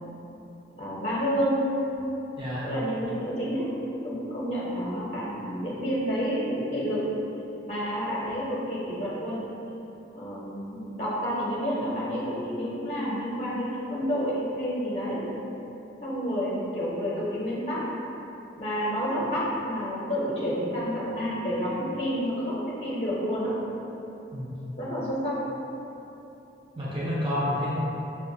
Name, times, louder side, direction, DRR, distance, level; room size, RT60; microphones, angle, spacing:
voice 1, 0.8-1.7 2.6-3.7 4.0-7.0 7.6-9.4 10.1-15.2 16.0-17.9 18.6-23.5 24.8-25.4, equal, 35° left, -7 dB, 0.7 m, -29 dB
voice 2, 26.8-27.8, left 1 dB, 30° right, -8 dB, 0.4 m, -29 dB
5.6 x 2.1 x 2.6 m, 3.0 s
head